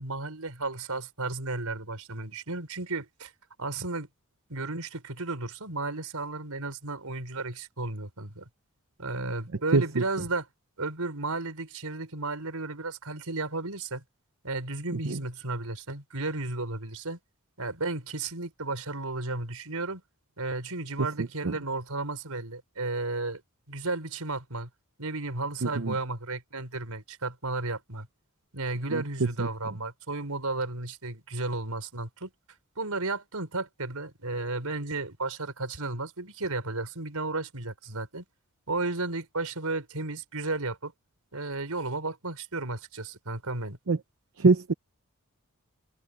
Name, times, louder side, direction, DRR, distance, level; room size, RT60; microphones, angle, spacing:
voice 1, 0.0-3.3 3.6-4.1 4.5-8.5 9.0-10.5 10.8-14.0 14.4-17.2 17.6-20.0 20.4-23.4 23.7-24.7 25.0-28.1 28.5-32.3 32.8-38.2 38.7-40.9 41.3-43.8, right 3 dB, 80° right, 4.7 m, -33 dB
voice 2, 9.7-10.0 21.2-21.5 25.6-25.9 28.9-29.5 43.9-44.0 44.4-44.7, right 3 dB, 65° right, 0.8 m, -24 dB
head